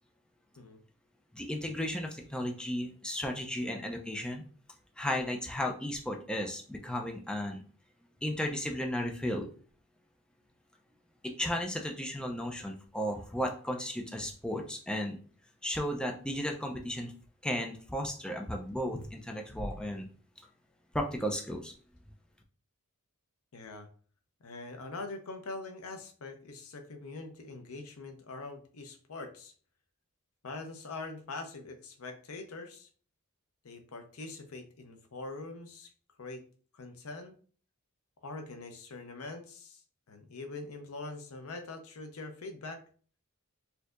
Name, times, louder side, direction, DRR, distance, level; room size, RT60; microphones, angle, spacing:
voice 1, 1.3-4.4 5.0-7.6 8.2-9.5 11.2-15.2 15.6-17.1 17.4-20.1 20.9-21.7, equal, 5° left, 2 dB, 0.4 m, -34 dB
voice 2, 23.5-23.9 24.4-29.5 30.4-32.9 33.6-35.9 36.2-36.4 36.7-37.3 38.2-39.8 40.1-42.8, left 3 dB, 75° left, 6 dB, 0.6 m, -43 dB
4.3 x 2.7 x 2.4 m, 0.43 s
head